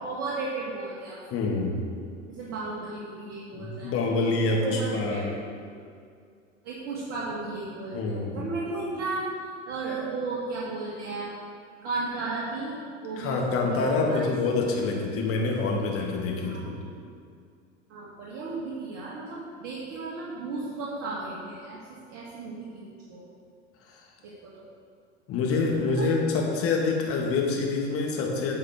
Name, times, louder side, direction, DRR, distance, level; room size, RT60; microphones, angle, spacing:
voice 1, 0.0-1.5 2.3-3.9 4.5-5.3 5.7-5.9 6.6-11.3 11.8-14.5 16.4-16.7 17.9-23.2 24.2-24.6 25.9-26.1 27.1-27.2, right 3 dB, 45° right, -6 dB, 1.7 m, -35 dB
voice 2, 1.3-1.9 3.5-5.3 7.9-8.4 13.2-16.8 25.3-28.6, left 3 dB, 35° left, 0 dB, 1.9 m, -26 dB
9.1 x 4.8 x 6.2 m, 2.2 s
figure-of-eight pair, 85°, 37 cm